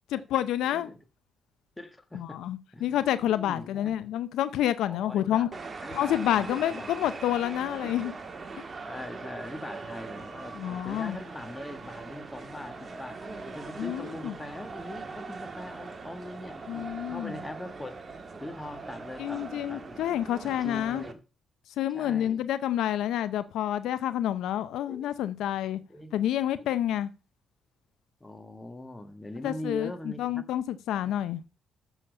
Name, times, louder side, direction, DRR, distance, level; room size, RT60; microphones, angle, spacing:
voice 1, 0.1-0.9 2.1-5.5 5.9-8.1 10.6-11.2 13.8-14.3 16.7-17.3 19.2-21.0 21.8-25.8 26.1-27.1 29.4-31.4, left 11 dB, 85° left, 0.6 m, -29 dB
voice 2, 0.6-1.0 1.8-2.4 2.7-2.9 3.2-4.1 4.8-5.5 5.8-7.1 7.8-7.9 8.8-13.2 13.5-17.9 18.4-20.1 20.4-21.2 21.9-22.4 24.9-25.1 25.9-26.7 28.2-30.4 31.0-31.1, left 1 dB, 15° left, 1.6 m, -42 dB
sound 1, 5.5-21.1, right 4 dB, 35° right, 1.6 m, -41 dB
7.3 x 7.0 x 5.3 m
cardioid pair, 85°, 0 cm